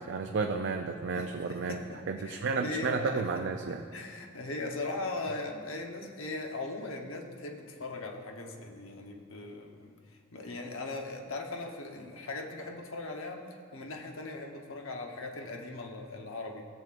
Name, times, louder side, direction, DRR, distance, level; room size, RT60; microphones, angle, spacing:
voice 1, 0.0-3.8, right 4 dB, 55° right, 4 dB, 0.4 m, -32 dB
voice 2, 1.1-2.0 2.2-3.2 3.7-9.9 10.3-13.4 13.7-16.7, left 2 dB, 65° left, 2 dB, 1.0 m, -39 dB
16.0 x 7.5 x 2.5 m, 2.2 s
head